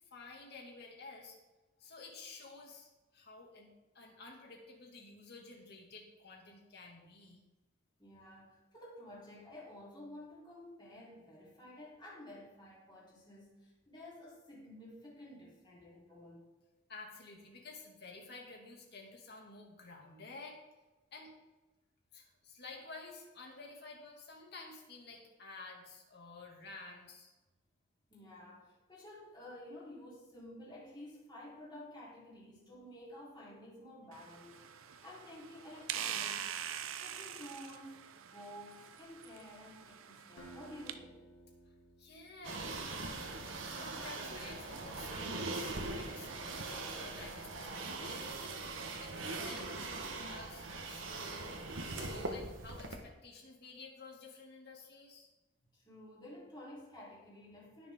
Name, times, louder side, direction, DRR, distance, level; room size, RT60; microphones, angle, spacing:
voice 1, 0.1-1.4 1.8-7.4 16.9-20.6 21.1-21.3 22.1-27.3 42.0-43.5 43.8-51.6 51.9-55.3, left 3 dB, 55° left, 0 dB, 2.5 m, -52 dB
voice 2, 8.0-16.4 28.1-36.5 37.0-41.2 55.7-57.9, left 1 dB, 20° left, -6 dB, 4.1 m, -52 dB
sound 1, 34.1-40.9, right 9 dB, 90° right, 0.7 m, -44 dB
Acoustic guitar, 40.4-43.4, right 1 dB, 80° left, 1.6 m, -56 dB
sound 2, 42.4-53.0, right 3 dB, 70° right, 1.4 m, -41 dB
19.5 x 6.7 x 3.8 m, 1.1 s
head